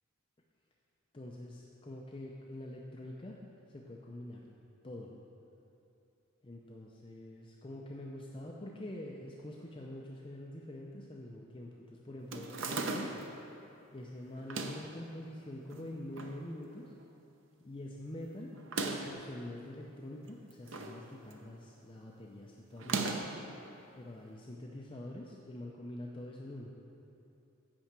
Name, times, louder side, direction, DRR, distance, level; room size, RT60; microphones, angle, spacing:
voice 1, 1.1-3.4 3.7-4.5 4.8-5.2 6.4-13.1 13.9-16.9 17.6-18.6 18.8-23.3 23.9-26.7, left 1 dB, 25° left, -1 dB, 0.5 m, -45 dB
sound 1, 12.3-13.3 14.4-14.9 15.7-16.4 16.7-16.8 17.0-17.1 18.6-19.2 20.2-21.0 21.3-21.6 22.8-23.4, right 3 dB, 60° right, 0.7 m, -37 dB
8.8 x 5.5 x 7.4 m, 2.7 s
head